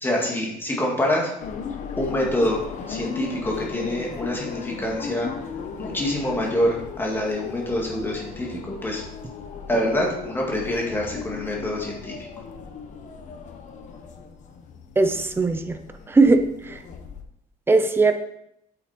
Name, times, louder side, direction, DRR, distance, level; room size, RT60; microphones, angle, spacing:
voice 1, 0.0-1.3 2.0-5.3 5.8-9.0 9.7-12.2, left 1 dB, 15° left, -2 dB, 2.3 m, -26 dB
sound 1, 1.4-17.2, left 5 dB, 50° left, 1.1 m, -36 dB
voice 2, 15.0-15.8 16.1-16.8 17.7-18.1, right 3 dB, 15° right, 7 dB, 0.8 m, -19 dB
8.8 x 7.8 x 4.5 m, 0.77 s
cardioid pair, 170°, 16 cm